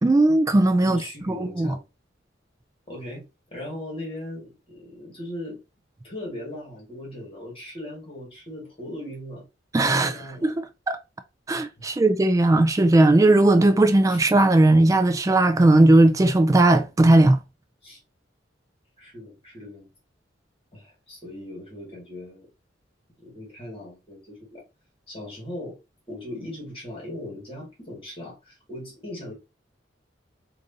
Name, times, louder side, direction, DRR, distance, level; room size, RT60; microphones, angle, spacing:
voice 1, 0.0-1.0 1.3-1.7 9.7-11.0 11.5-17.4, right 2 dB, 20° right, 0.3 m, -18 dB
voice 2, 0.8-1.8 2.9-5.6 6.0-9.5 9.9-10.5 11.8-12.0 14.1-14.2 17.8-18.0 19.0-19.9 20.7-22.5 23.2-24.6 25.1-25.8 26.1-29.3, left 1 dB, 30° left, 2.0 m, -38 dB
4.9 x 2.6 x 2.7 m
head